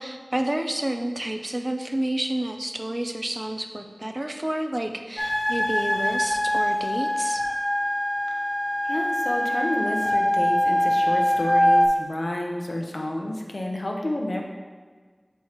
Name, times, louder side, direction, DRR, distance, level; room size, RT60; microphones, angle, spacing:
voice 1, 0.0-7.4, right 1 dB, 40° right, 5 dB, 0.5 m, -29 dB
sound 1, 5.2-11.9, left 1 dB, 35° left, 0.7 m, -23 dB
voice 2, 8.8-14.4, left 1 dB, 75° left, 0 dB, 0.8 m, -30 dB
7.2 x 4.5 x 3.0 m, 1.5 s
wide cardioid pair, 45°, 0 cm